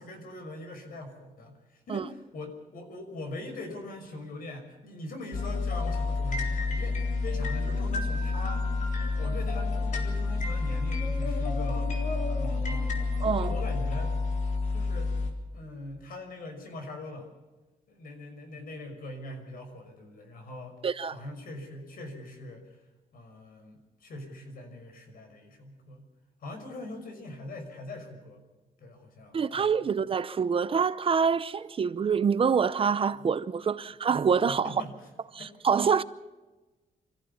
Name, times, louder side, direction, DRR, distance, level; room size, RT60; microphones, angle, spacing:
voice 1, 0.0-8.6 9.2-11.9 12.4-12.9 13.4-14.1 14.7-15.1 15.5-17.3 17.9-20.8 21.1-22.7 23.1-26.0 26.4-28.4 28.8-29.8 34.5-35.1 35.4-35.5, left 1 dB, 70° left, 5.8 m, -42 dB
sound 1, 5.3-15.3, left 3 dB, 55° left, 3.8 m, -29 dB
voice 2, 13.2-13.5 20.8-21.2 29.3-34.7 35.3-36.0, right 6 dB, 35° right, 0.7 m, -26 dB
26.0 x 15.0 x 7.1 m
wide cardioid pair, 165°, 15 cm